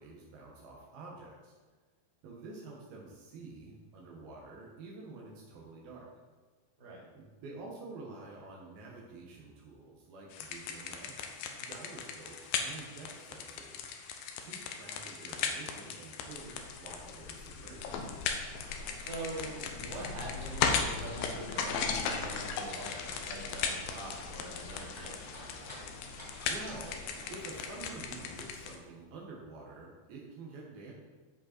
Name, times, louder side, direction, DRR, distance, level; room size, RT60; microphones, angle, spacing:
voice 1, 0.0-1.5 2.2-6.1 7.1-14.1 14.4-18.0 26.4-27.0 27.3-30.9, right 3 dB, 75° right, -3 dB, 3.1 m, -48 dB
sound 1, 10.3-28.8, left 6 dB, 80° left, 2.5 m, -37 dB
sound 2, 18.4-27.8, equal, 25° left, 0.5 m, -50 dB
voice 2, 18.9-25.2, right 1 dB, 40° right, -5 dB, 3.3 m, -43 dB
13.0 x 5.3 x 4.4 m, 1.4 s
omnidirectional pair, 4.3 m